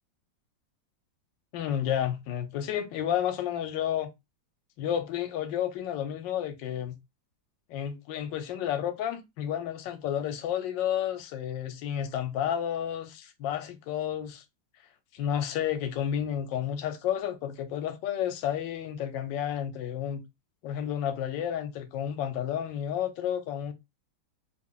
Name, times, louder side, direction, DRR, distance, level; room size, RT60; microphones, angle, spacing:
voice 1, 1.5-4.1 4.8-7.0 7.7-14.4 15.1-20.2 20.6-23.7, left 10 dB, 75° left, 1.3 m, -31 dB
3.0 x 2.3 x 3.6 m
omnidirectional pair, 2.0 m